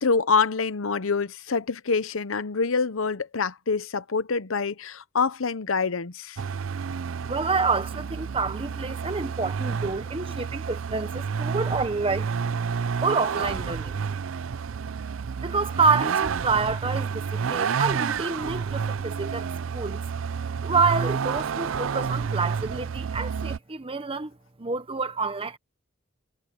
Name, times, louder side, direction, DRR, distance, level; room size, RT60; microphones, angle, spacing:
voice 1, 0.0-6.4, left 4 dB, 80° left, 0.8 m, -26 dB
Vehicle, 6.4-23.6, right 6 dB, 75° right, 0.4 m, -30 dB
voice 2, 7.3-12.3 13.0-14.0 15.4-19.4 19.7-20.0 20.6-24.3 24.6-25.6, right 4 dB, 30° right, 1.1 m, -27 dB
head